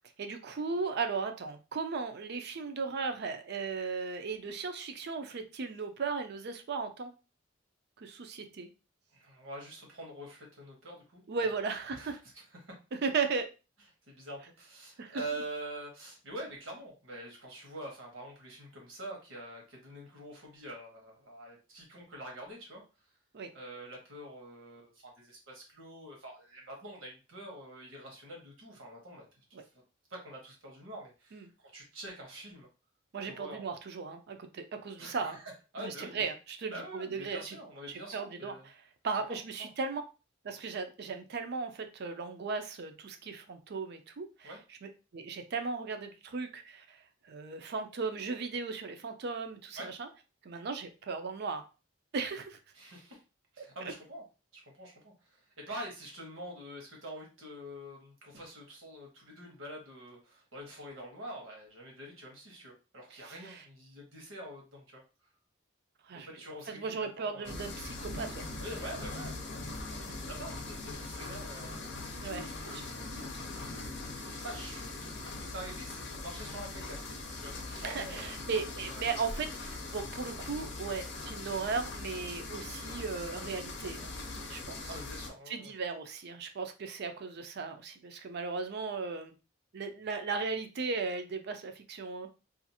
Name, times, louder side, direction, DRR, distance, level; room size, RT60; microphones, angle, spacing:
voice 1, 0.2-7.1 8.0-8.7 11.3-12.2 13.0-13.5 15.0-15.2 23.3-23.5 29.5-29.6 31.3-31.5 33.1-35.4 35.8-37.6 37.9-38.5 39.0-40.0 40.4-44.5 44.8-50.1 50.4-51.6 52.1-52.6 53.6-53.7 63.2-63.6 66.1-66.3 66.7-68.5 70.0-70.1 72.2-72.8 77.7-84.1 84.4-84.9 85.5-89.4 89.7-92.3, right 4 dB, 55° right, 7 dB, 0.4 m, -36 dB
voice 2, 9.1-11.2 11.9-12.8 14.1-22.8 23.5-29.2 29.6-29.7 30.1-31.4 31.7-32.7 33.3-33.6 35.0-36.3 36.7-38.7 39.3-39.7 44.4-44.6 49.7-49.9 52.7-53.2 53.5-54.2 54.5-55.4 55.7-65.0 66.1-67.6 68.6-69.6 69.9-78.3 78.9-79.0 84.8-85.7, right 1 dB, 85° right, 0 dB, 1.1 m, -46 dB
sound 1, 67.4-85.3, left 2 dB, 60° left, 0.6 m, -41 dB
2.5 x 2.4 x 2.7 m, 0.31 s
head